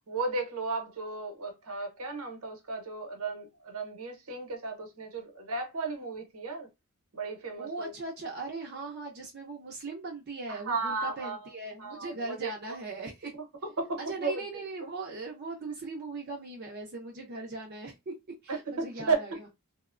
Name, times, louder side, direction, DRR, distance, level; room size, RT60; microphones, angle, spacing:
voice 1, 0.1-6.7 7.1-7.9 10.5-11.4 11.8-12.8 13.8-14.7 18.5-19.2, right 3 dB, 75° right, 0.8 m, -34 dB
voice 2, 7.6-13.3 14.0-18.1 18.4-19.4, right 3 dB, 45° right, 0.5 m, -39 dB
2.9 x 2.1 x 2.4 m
head